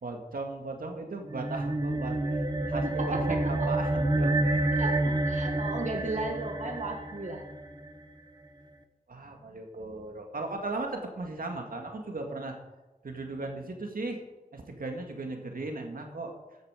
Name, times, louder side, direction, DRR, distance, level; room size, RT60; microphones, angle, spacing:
voice 1, 0.0-3.4 3.6-4.7 9.1-12.5 13.0-14.2 14.5-16.3, right 2 dB, 75° right, 3 dB, 2.0 m, -37 dB
sound 1, 1.2-7.9, right 2 dB, 30° right, 1.2 m, -29 dB
voice 2, 2.8-3.7 4.8-7.5, right 2 dB, 55° right, 2 dB, 1.7 m, -35 dB
14.0 x 9.4 x 5.1 m, 1.1 s
wide cardioid pair, 65°, 15 cm